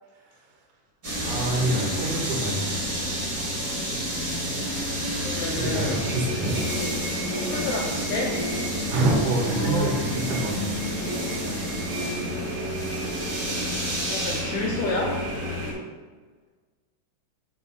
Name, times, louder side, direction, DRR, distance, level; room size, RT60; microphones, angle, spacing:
sound 1, 1.0-15.7, equal, 35° right, 1.5 m, -29 dB
voice 1, 1.2-2.8 5.6-6.6 8.9-10.8 11.2-11.6, right 2 dB, 55° right, -4 dB, 2.5 m, -27 dB
voice 2, 5.2-6.0 7.4-8.4 9.4-9.9 14.0-15.2, left 3 dB, 80° left, -1 dB, 2.3 m, -30 dB
7.9 x 7.7 x 2.4 m, 1.4 s
omnidirectional pair, 5.3 m